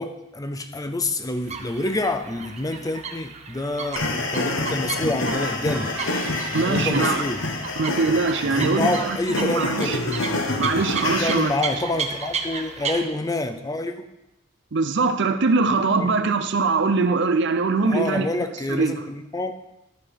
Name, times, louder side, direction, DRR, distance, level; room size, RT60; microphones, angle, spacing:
voice 1, 0.0-6.0 6.5-7.4 8.4-10.0 11.2-14.1 16.0-16.1 17.9-19.6, left 2 dB, 20° left, 0.6 m, -27 dB
sound 1, 1.4-13.1, right 5 dB, 35° right, 0.8 m, -34 dB
sound 2, 4.0-11.6, left 2 dB, 70° left, 1.2 m, -27 dB
sound 3, 5.3-7.7, equal, 10° right, 1.5 m, -35 dB
voice 2, 6.5-7.2 7.8-10.0 10.6-11.5 14.7-18.9, right 4 dB, 65° right, 0.7 m, -22 dB
11.5 x 4.9 x 5.9 m
head